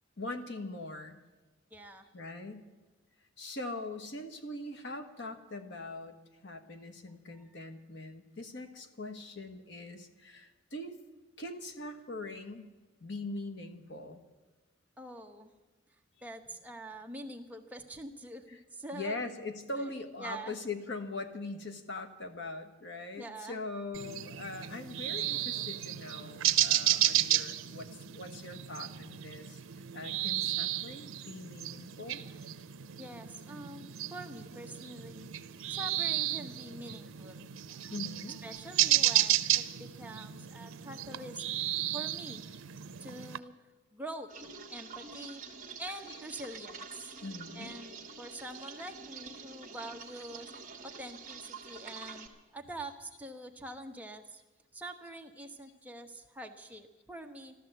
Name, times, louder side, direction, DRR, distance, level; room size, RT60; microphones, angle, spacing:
voice 1, 0.2-1.2 2.1-2.6 3.4-6.2 6.4-11.0 11.4-12.7 13.0-14.2 18.5-18.6 18.9-29.6 29.9-32.2 37.9-38.4 45.4-45.5 46.1-46.2 47.2-48.0, left 2 dB, 60° left, 7 dB, 1.3 m, -42 dB
voice 2, 1.7-2.1 7.4-7.5 15.0-15.5 16.2-19.3 19.8-19.9 20.2-20.5 23.2-23.6 33.0-35.3 35.7-37.5 38.4-41.5 41.9-42.4 43.0-43.5 43.9-44.3 44.7-45.4 45.8-47.1 47.5-50.5 50.8-54.4 54.7-57.5, right 1 dB, 10° right, 3 dB, 1.0 m, -45 dB
sound 1, 23.9-43.4, right 13 dB, 80° right, 0.6 m, -33 dB
sound 2, 44.3-52.3, right 5 dB, 40° right, 1.5 m, -47 dB
13.0 x 13.0 x 7.9 m, 1.2 s
head